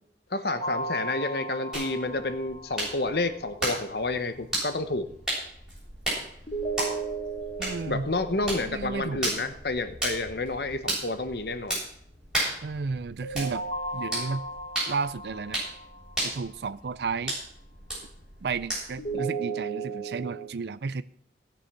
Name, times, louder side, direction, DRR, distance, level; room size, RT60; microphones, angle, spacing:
voice 1, 0.3-5.1 7.9-11.8, left 2 dB, 60° left, 9 dB, 1.1 m, -30 dB
sound 1, 0.6-3.5 6.5-9.5 13.2-16.4 19.0-20.5, right 3 dB, 35° left, 1.9 m, -35 dB
sound 2, 1.7-19.1, right 1 dB, 5° right, 7.5 m, -35 dB
voice 2, 7.6-8.1 8.7-9.2 12.6-13.6 13.9-14.5 14.9-15.6 16.2-17.4 18.4-21.0, right 4 dB, 65° right, 14 dB, 0.4 m, -32 dB
18.0 x 6.9 x 6.1 m, 0.66 s
head